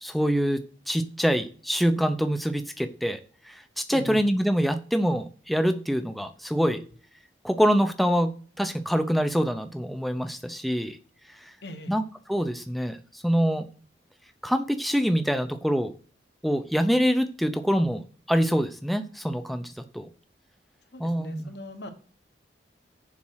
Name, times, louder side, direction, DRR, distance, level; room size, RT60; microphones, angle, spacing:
voice 1, 0.0-3.2 3.5-6.8 7.4-11.0 11.4-11.5 11.9-13.7 14.4-15.9 16.4-18.0 18.3-20.1 21.0-21.5, equal, ahead, 0.7 m, -25 dB
voice 2, 11.6-11.9 20.9-21.9, equal, 65° left, 1.2 m, -39 dB
7.3 x 5.2 x 6.3 m
head